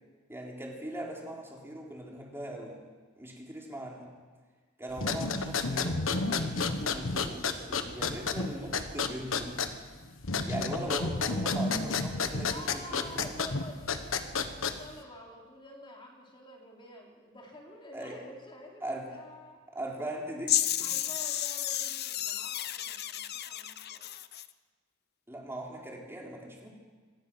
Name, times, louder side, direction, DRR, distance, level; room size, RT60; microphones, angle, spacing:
voice 1, 0.3-2.8 3.2-4.1 4.8-9.6 10.5-13.3 17.9-18.2 18.8-19.1 19.7-20.9 25.3-26.7, right 1 dB, 10° right, -1 dB, 3.9 m, -40 dB
sound 1, 4.9-15.0, left 4 dB, 80° left, 1.4 m, -32 dB
voice 2, 12.5-19.6 20.8-24.1, left 1 dB, 25° left, -1 dB, 3.5 m, -49 dB
sound 2, 20.5-24.5, left 12 dB, 55° left, 0.8 m, -32 dB
26.0 x 18.5 x 6.2 m, 1.5 s
head